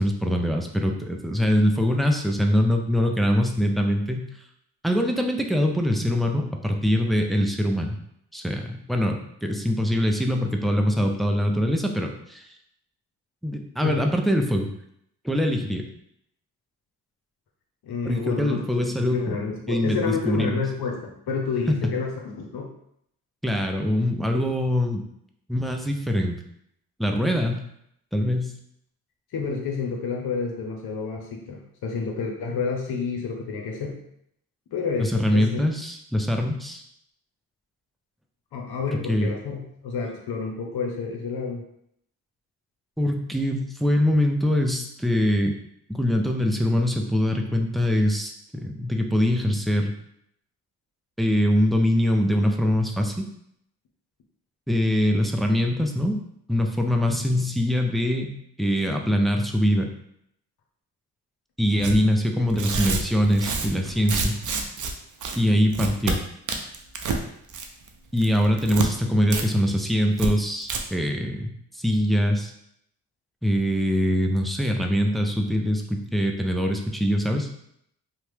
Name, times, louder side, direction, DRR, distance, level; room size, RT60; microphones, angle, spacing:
voice 1, 0.0-4.2 4.8-8.0 8.3-12.5 13.4-14.7 15.2-15.9 18.0-19.4 19.7-20.6 21.7-21.9 23.4-25.0 25.5-26.4 27.0-27.6 28.1-28.5 35.0-36.8 39.1-39.3 43.0-45.6 45.9-49.9 51.2-53.3 54.7-56.2 56.5-58.3 58.6-59.9 61.6-64.4 65.4-66.2 68.1-72.5 73.4-77.5, equal, ahead, 2 dB, 0.4 m, -23 dB
voice 2, 17.8-18.6 19.0-22.7 29.3-33.9 34.7-35.6 38.5-39.6 39.8-41.6 61.8-62.1, left 5 dB, 85° left, 1 dB, 0.7 m, -29 dB
Tearing, 61.8-62.0 62.5-64.9 65.2-65.4 65.7-66.2 66.5-67.2 67.5-67.9 68.2-68.9 69.3-69.4 69.7-69.8 70.2-70.3 70.6-70.8, right 4 dB, 55° right, 0.5 m, -28 dB
2.8 x 2.1 x 3.2 m, 0.72 s
cardioid pair, 55°, 37 cm